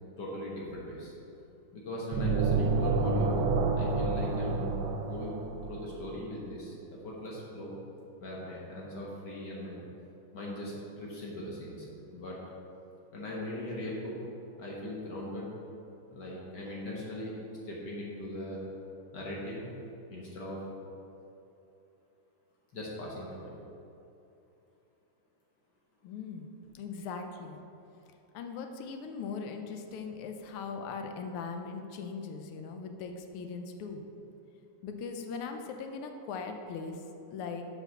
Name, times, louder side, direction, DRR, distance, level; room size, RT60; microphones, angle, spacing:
voice 1, 0.2-1.1 1.7-3.4 3.7-4.7 5.1-7.7 8.2-9.8 10.3-12.4 13.1-14.1 14.6-15.5 16.1-17.3 17.6-18.6 19.1-19.7 20.1-20.6 22.7-23.5, left 1 dB, 55° left, -4 dB, 1.6 m, -40 dB
sound 1, 2.1-5.9, right 4 dB, 85° right, 1.5 m, -28 dB
voice 2, 26.0-27.6 28.3-34.0 34.8-37.0 37.3-37.6, left 5 dB, 85° left, 5 dB, 1.6 m, -40 dB
7.8 x 4.7 x 5.8 m, 2.8 s
omnidirectional pair, 2.3 m